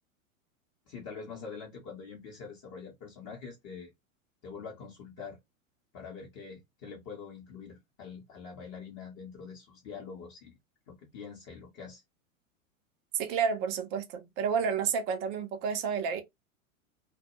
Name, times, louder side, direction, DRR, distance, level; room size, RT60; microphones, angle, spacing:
voice 1, 0.9-3.9 4.4-5.4 5.9-10.6 10.9-12.0, left 5 dB, 35° left, 0.8 m, -45 dB
voice 2, 13.1-16.2, right 6 dB, 25° right, 0.4 m, -30 dB
2.1 x 2.0 x 2.9 m
figure-of-eight pair, 95°, 41 cm